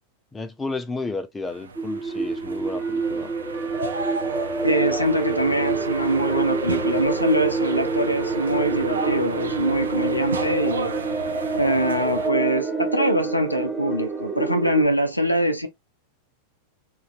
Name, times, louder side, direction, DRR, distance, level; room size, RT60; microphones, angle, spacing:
voice 1, 0.3-3.3, left 3 dB, 15° left, 0.5 m, -32 dB
sound 1, 1.5-12.3, right 4 dB, 70° right, 0.5 m, -33 dB
sound 2, 1.8-14.9, right 4 dB, 10° right, 1.0 m, -27 dB
voice 2, 4.6-10.9 11.6-15.7, right 1 dB, 85° left, 0.6 m, -23 dB
3.8 x 2.6 x 2.4 m
figure-of-eight pair, 90°, 0 cm